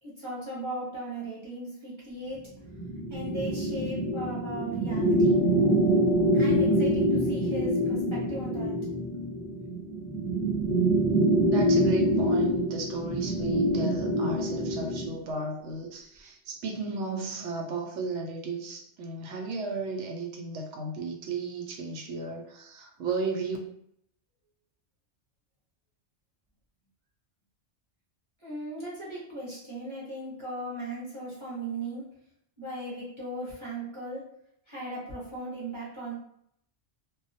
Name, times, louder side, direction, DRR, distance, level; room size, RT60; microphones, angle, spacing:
voice 1, 0.0-2.5 3.1-5.4 6.3-8.7 28.4-32.1 32.6-34.3 34.7-36.1, right 1 dB, 30° right, -8 dB, 0.8 m, -37 dB
sound 1, 2.7-15.2, right 1 dB, 30° left, 0.6 m, -25 dB
voice 2, 11.5-23.6, right 3 dB, 85° right, 2 dB, 0.9 m, -34 dB
2.3 x 2.2 x 2.6 m, 0.71 s
omnidirectional pair, 1.2 m